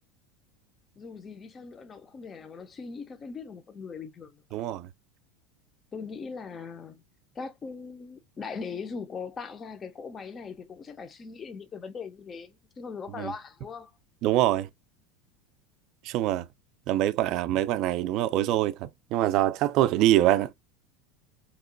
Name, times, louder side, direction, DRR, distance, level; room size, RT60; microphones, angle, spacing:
voice 1, 1.0-4.4 5.9-7.0 7.4-13.9, left 5 dB, 25° left, 0.4 m, -40 dB
voice 2, 4.5-4.9 13.2-13.3 14.2-14.7 16.1-16.5 16.9-20.5, right 14 dB, 50° right, 0.3 m, -24 dB
2.9 x 2.2 x 3.7 m
supercardioid pair, 140°, 0 cm